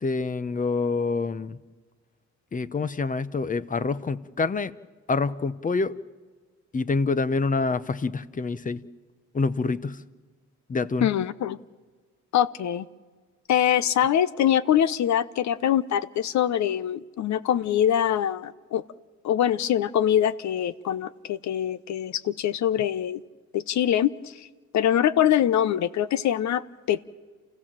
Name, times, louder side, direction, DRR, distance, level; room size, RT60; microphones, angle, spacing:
voice 1, 0.0-1.6 2.5-4.7 5.1-6.0 6.7-8.8 9.3-10.0 10.7-11.1, left 4 dB, 25° left, 0.8 m, -26 dB
voice 2, 11.0-11.6 12.3-12.9 13.5-18.8 19.2-23.2 23.5-24.5 24.7-27.0, left 10 dB, 65° left, 0.9 m, -24 dB
29.0 x 15.5 x 7.5 m
cardioid pair, 90°, 30 cm